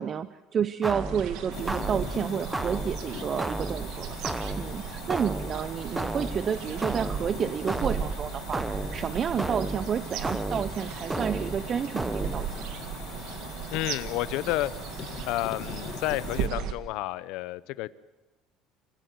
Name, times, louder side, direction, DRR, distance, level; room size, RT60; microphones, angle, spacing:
voice 1, 0.0-12.7, right 7 dB, 30° right, 13 dB, 0.6 m, -30 dB
sound 1, 0.8-12.8, right 2 dB, 10° right, 0.9 m, -34 dB
village ambience Ladakh, 0.9-16.7, right 8 dB, 65° right, 1.8 m, -37 dB
sound 2, 1.5-16.5, left 10 dB, 45° left, 1.2 m, -43 dB
voice 2, 13.7-14.7 15.2-17.9, left 17 dB, 70° left, 16 dB, 0.8 m, -30 dB
25.5 x 15.5 x 7.8 m, 1.1 s
cardioid pair, 140°, 0 cm